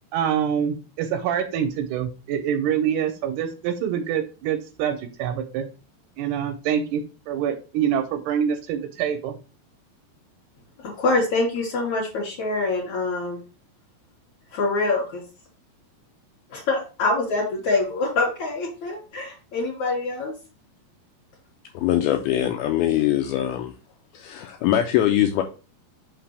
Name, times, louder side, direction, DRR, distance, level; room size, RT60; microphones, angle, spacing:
voice 1, 0.1-5.7 6.2-9.4, right 8 dB, 80° right, 7 dB, 2.6 m, -25 dB
voice 2, 11.0-13.4 14.5-15.2 16.5-20.3, left 3 dB, 50° left, -4 dB, 2.7 m, -25 dB
voice 3, 21.8-23.7 24.1-25.4, left 12 dB, 90° left, 5 dB, 2.2 m, -22 dB
5.9 x 5.8 x 3.4 m, 0.33 s
omnidirectional pair, 4.9 m